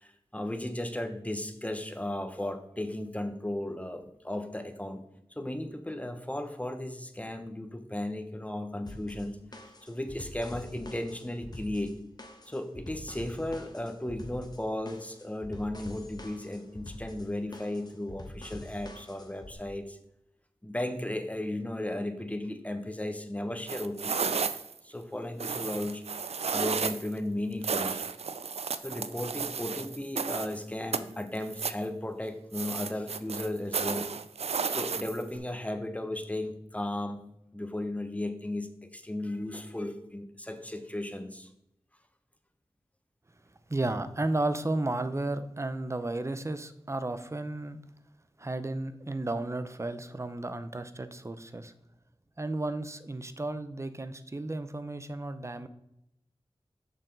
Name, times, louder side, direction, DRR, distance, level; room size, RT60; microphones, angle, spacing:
voice 1, 0.0-5.0 5.3-9.4 9.8-11.9 12.5-20.0 20.6-24.4 24.8-26.0 26.5-28.0 28.8-34.1 34.7-37.2 37.5-41.5, left 1 dB, 15° left, 7 dB, 0.9 m, -35 dB
sound 1, 8.9-19.5, left 1 dB, 40° left, 1.1 m, -46 dB
sound 2, 23.7-24.8 25.4-27.1 27.6-30.6 30.9-31.8 32.5-35.4, right 5 dB, 85° right, 0.4 m, -33 dB
voice 2, 43.7-47.8 48.4-51.7 52.4-55.7, right 2 dB, 25° right, 11 dB, 0.6 m, -33 dB
6.7 x 5.9 x 3.9 m, 0.81 s
wide cardioid pair, 50°, 11 cm